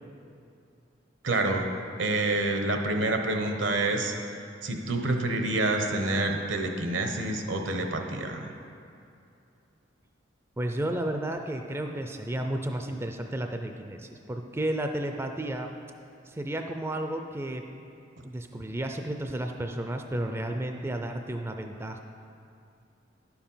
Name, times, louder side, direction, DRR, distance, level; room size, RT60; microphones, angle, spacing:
voice 1, 1.2-1.7 2.0-4.1 4.6-8.5, right 2 dB, 75° right, 4 dB, 1.0 m, -27 dB
voice 2, 10.6-15.7 16.3-17.6 18.2-22.0, right 1 dB, 15° right, 5 dB, 0.4 m, -32 dB
10.5 x 7.0 x 5.6 m, 2.6 s
head